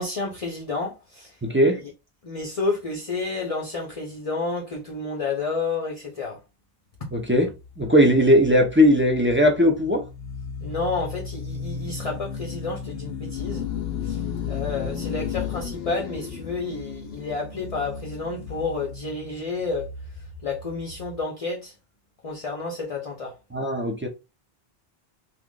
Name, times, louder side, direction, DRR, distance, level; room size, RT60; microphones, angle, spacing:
voice 1, 0.0-1.4 1.8-1.9 2.2-6.4 10.6-13.7 14.0-19.9 20.4-21.7 22.2-23.4, left 3 dB, 40° left, 0.7 m, -30 dB
voice 2, 1.4-1.8 7.1-7.5 7.8-10.0 23.5-24.1, equal, 15° right, 0.6 m, -18 dB
sound 1, 7.0-21.2, left 6 dB, 75° left, 0.9 m, -35 dB
2.9 x 2.4 x 3.6 m
omnidirectional pair, 1.0 m